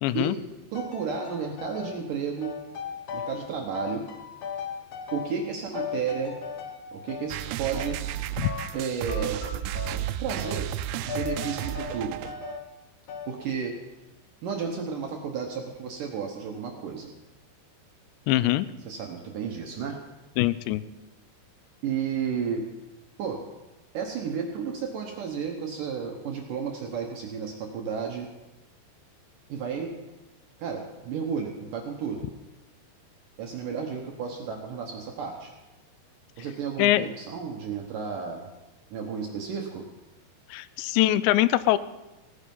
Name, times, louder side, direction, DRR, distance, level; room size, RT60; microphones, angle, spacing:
voice 1, 0.0-0.4 8.4-8.5 18.3-18.7 20.4-20.8 36.8-37.1 40.5-41.8, left 15 dB, 85° left, 16 dB, 2.8 m, -23 dB
sound 1, 0.7-2.0 2.4-3.5 3.7-5.5 5.7-7.3 7.7-8.8 9.1-10.1 10.4-10.7 11.1-12.7 13.1-13.4, left 7 dB, 65° left, 2.0 m, -37 dB
voice 2, 0.7-2.6 3.1-4.0 5.1-6.4 6.9-8.0 8.7-9.4 10.1-10.7 11.0-12.2 13.3-13.8 14.4-17.1 18.9-20.0 21.8-22.6 23.2-23.4 23.9-28.3 29.5-29.9 30.6-32.3 33.4-35.5 36.4-38.5 38.9-39.9, right 6 dB, 70° right, 1 dB, 2.1 m, -32 dB
sound 2, 7.3-12.6, right 12 dB, 90° right, 2.8 m, -33 dB
17.5 x 9.8 x 5.4 m, 1.1 s
omnidirectional pair, 5.0 m